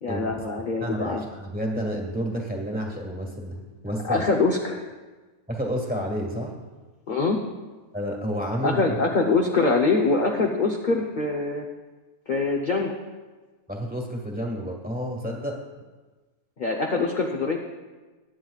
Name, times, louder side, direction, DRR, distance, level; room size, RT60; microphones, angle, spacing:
voice 1, 0.0-1.2 4.0-4.9 7.1-7.4 8.6-11.6 12.3-12.9 16.6-17.6, left 3 dB, 40° left, 1 dB, 0.8 m, -24 dB
voice 2, 0.8-4.2 5.5-6.5 7.9-8.8 13.7-15.6, equal, 5° right, 0 dB, 1.6 m, -30 dB
21.0 x 9.2 x 2.4 m, 1.3 s
omnidirectional pair, 1.6 m